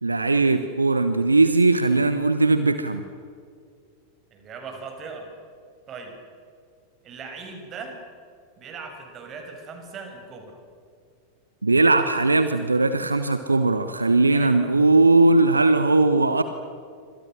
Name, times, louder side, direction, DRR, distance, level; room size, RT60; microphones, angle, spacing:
voice 1, 0.0-3.0 11.6-16.4, right 3 dB, 80° right, 10 dB, 1.1 m, -19 dB
voice 2, 4.3-5.3 5.9-6.1 7.0-7.9 8.6-10.6 14.3-14.7, right 4 dB, 30° right, 4 dB, 6.8 m, -39 dB
28.0 x 26.0 x 6.5 m, 2.2 s
figure-of-eight pair, 90°, 0 cm